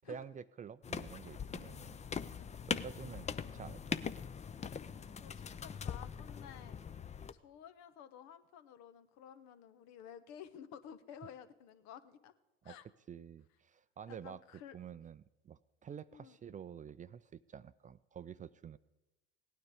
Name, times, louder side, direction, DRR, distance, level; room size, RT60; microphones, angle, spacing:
voice 1, 0.0-2.0 2.7-4.1 12.6-12.8 13.1-14.4 14.7-18.8, right 7 dB, 25° right, 16 dB, 0.4 m, -49 dB
sound 1, 0.8-7.3, left 6 dB, 25° left, 0.6 m, -42 dB
voice 2, 5.2-6.8 7.3-12.3 12.6-12.9 14.1-14.7 16.1-16.4, left 9 dB, 70° left, 11 dB, 1.0 m, -53 dB
16.5 x 9.5 x 4.9 m, 1.1 s
hypercardioid pair, 75°, 29 cm